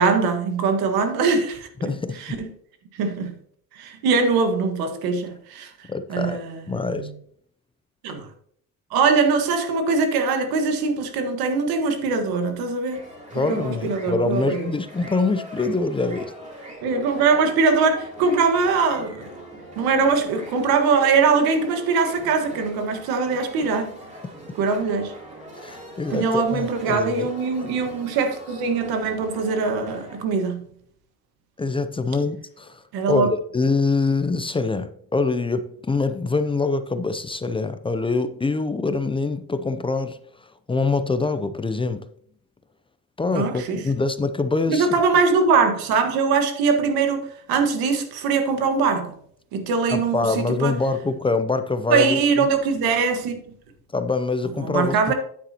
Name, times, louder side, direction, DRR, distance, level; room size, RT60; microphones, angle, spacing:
voice 1, 0.0-1.9 2.2-2.5 3.0-3.3 3.7-6.6 6.9-7.1 8.0-8.3 8.9-13.1 13.3-14.7 16.8-19.3 19.8-23.9 24.5-25.1 26.1-30.7 32.9-33.3 43.3-43.8 44.7-49.1 49.5-50.7 51.9-53.4 54.6-55.1, right 4 dB, 85° right, 1.5 m, -22 dB
voice 2, 1.8-2.2 5.9-6.4 6.7-7.1 13.3-16.3 25.6-27.3 31.6-32.8 33.1-40.2 40.7-42.1 43.2-45.0 49.9-52.2 53.9-55.1, left 3 dB, 15° left, 0.4 m, -24 dB
sound 1, 12.9-30.2, right 1 dB, 20° right, 3.6 m, -42 dB
9.6 x 8.3 x 2.9 m
cardioid pair, 115°, 36 cm